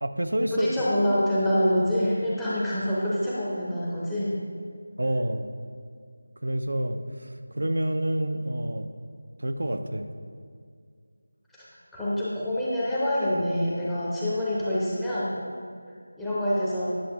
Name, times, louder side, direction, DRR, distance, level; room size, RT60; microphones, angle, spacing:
voice 1, 0.0-0.7 5.0-5.5 6.4-8.9 9.4-10.1, right 1 dB, 65° right, 8 dB, 0.5 m, -28 dB
voice 2, 0.5-4.4 11.6-11.7 11.9-15.3 16.2-16.9, equal, 5° left, -10 dB, 0.9 m, -26 dB
10.0 x 6.9 x 3.0 m, 2.1 s
figure-of-eight pair, 165°, 0 cm